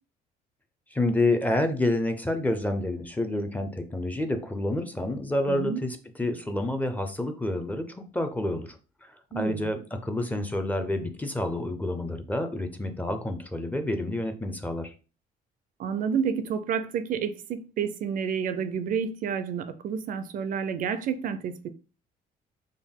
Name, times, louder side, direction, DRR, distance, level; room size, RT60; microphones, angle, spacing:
voice 1, 0.9-8.7 9.3-14.9, left 1 dB, 10° left, 0.5 m, -28 dB
voice 2, 5.5-5.8 9.3-9.6 15.8-21.7, right 7 dB, 55° right, 0.4 m, -30 dB
3.5 x 2.2 x 3.6 m
cardioid pair, 110°, 17 cm